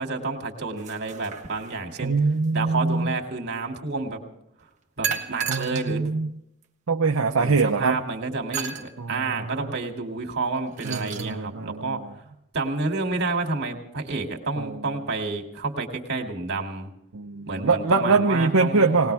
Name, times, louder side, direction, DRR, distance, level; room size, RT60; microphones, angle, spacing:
voice 1, 0.0-2.1 2.5-4.2 5.0-6.1 7.3-12.0 12.5-16.9 17.5-19.0, right 3 dB, 50° right, 2 dB, 2.6 m, -29 dB
sound 1, 0.8-1.9 5.0-5.9 6.6-6.7 8.5-8.9 10.5-11.3, right 7 dB, 35° right, 1.4 m, -32 dB
voice 2, 2.0-3.1 5.5-6.3 6.9-8.0 9.0-9.5 10.8-12.0 14.6-14.7 17.1-19.1, right 4 dB, 65° right, 3 dB, 0.7 m, -23 dB
20.0 x 19.5 x 3.5 m, 0.77 s
head